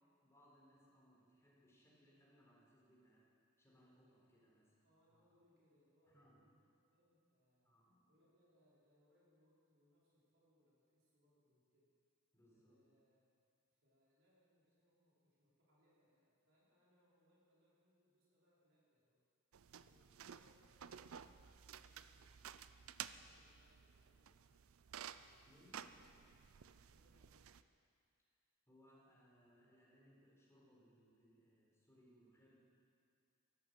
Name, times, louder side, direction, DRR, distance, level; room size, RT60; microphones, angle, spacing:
voice 1, 0.2-3.3 3.6-4.8 5.1-5.2 6.0-6.4 7.6-8.1 12.3-12.9 19.8-20.1 25.4-25.9 28.7-32.6, equal, 15° left, -5 dB, 4.4 m, -69 dB
voice 2, 4.8-7.7 8.1-11.9 12.5-13.3 13.7-19.2 19.9-22.6 23.0-24.6 25.7-26.2 26.5-27.5, equal, 65° right, -7 dB, 5.0 m, -77 dB
sound 1, 19.5-27.6, right 9 dB, 80° right, 0.5 m, -54 dB
13.5 x 11.0 x 8.1 m, 2.3 s
head